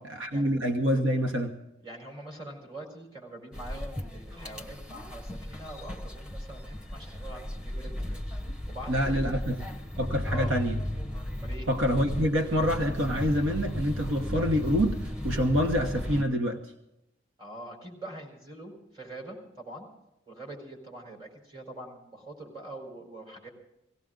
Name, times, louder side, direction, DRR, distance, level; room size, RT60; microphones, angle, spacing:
voice 1, 0.1-1.5 8.9-9.6 10.0-10.8 11.7-16.6, equal, 80° right, 4 dB, 1.3 m, -26 dB
voice 2, 1.8-8.2 8.7-9.3 10.2-10.5 11.3-11.7 17.4-19.9 20.3-23.5, right 1 dB, 25° right, 1 dB, 4.5 m, -44 dB
sound 1, 3.5-16.2, left 1 dB, 5° right, 1.1 m, -35 dB
18.0 x 17.0 x 3.8 m, 0.87 s
head